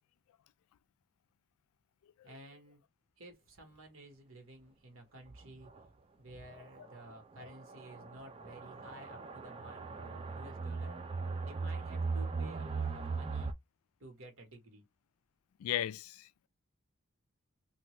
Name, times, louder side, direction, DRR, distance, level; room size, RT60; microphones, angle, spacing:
voice 1, 2.2-2.8 3.2-5.7 6.1-11.0 11.4-13.5 14.0-14.8, right 1 dB, 65° right, 1.3 m, -53 dB
sound 1, 5.3-5.4 5.8-5.9 6.4-6.5 7.4-13.5, right 4 dB, 25° right, 0.3 m, -38 dB
voice 2, 15.6-16.5, left 12 dB, 80° left, 0.3 m, -36 dB
2.8 x 2.6 x 3.1 m
head